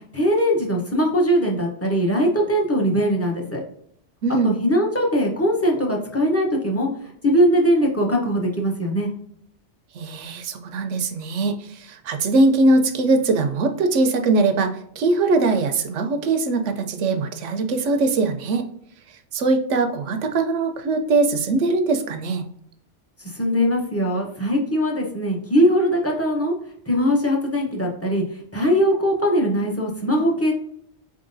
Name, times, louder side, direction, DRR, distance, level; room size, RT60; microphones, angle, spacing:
voice 1, 0.1-3.6 4.4-6.9 7.2-9.1 23.2-26.5 26.9-28.2 28.5-30.5, equal, 15° left, -1 dB, 0.7 m, -21 dB
voice 2, 9.9-18.7 19.3-22.5, right 3 dB, 80° right, 7 dB, 1.0 m, -21 dB
4.4 x 3.7 x 2.6 m, 0.68 s
omnidirectional pair, 1.2 m